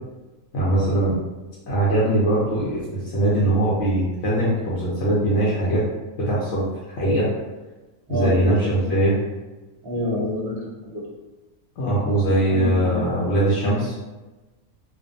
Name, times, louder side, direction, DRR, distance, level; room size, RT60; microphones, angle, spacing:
voice 1, 0.5-1.2 1.7-5.8 6.2-6.6 7.0-7.3 8.1-9.2 11.8-13.9, right 1 dB, 65° left, -7 dB, 0.9 m, -21 dB
voice 2, 8.1-9.0 9.8-11.0 12.5-13.2, left 2 dB, 50° right, -4 dB, 0.8 m, -28 dB
2.4 x 2.1 x 2.5 m, 1.1 s
omnidirectional pair, 1.4 m